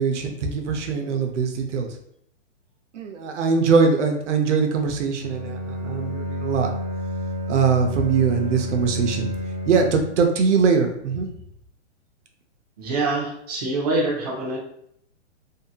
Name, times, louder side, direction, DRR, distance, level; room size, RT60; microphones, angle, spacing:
voice 1, 0.0-1.9 2.9-6.7 7.5-9.3 9.7-11.3, right 5 dB, 85° right, 4 dB, 0.6 m, -22 dB
Bowed string instrument, 5.2-10.3, left 1 dB, 10° left, 1.5 m, -30 dB
voice 2, 12.8-14.6, right 2 dB, 35° right, -2 dB, 0.5 m, -25 dB
2.7 x 2.6 x 2.2 m, 0.70 s
hypercardioid pair, 175°, 35 cm